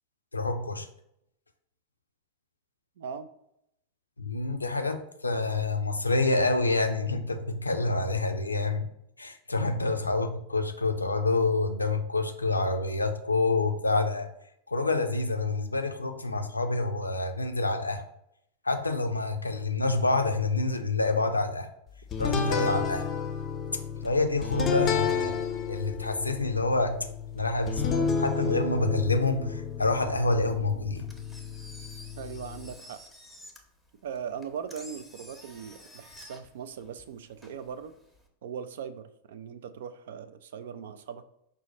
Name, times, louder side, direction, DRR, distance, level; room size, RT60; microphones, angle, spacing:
voice 1, 0.3-0.9 4.2-8.9 9.2-14.3 14.7-18.0 18.6-21.7 22.2-23.1 24.0-25.3 25.7-27.0 27.3-31.0, left 3 dB, 80° left, 6 dB, 0.4 m, -27 dB
voice 2, 3.0-3.3 32.2-33.0 34.0-37.9 38.4-41.2, right 7 dB, 60° right, 12 dB, 0.3 m, -39 dB
sound 1, 22.1-32.8, left 6 dB, 25° left, 0.5 m, -31 dB
Engine, 31.0-38.3, left 1 dB, 5° right, 0.7 m, -51 dB
5.3 x 2.2 x 4.2 m, 0.77 s
figure-of-eight pair, 90°, 0 cm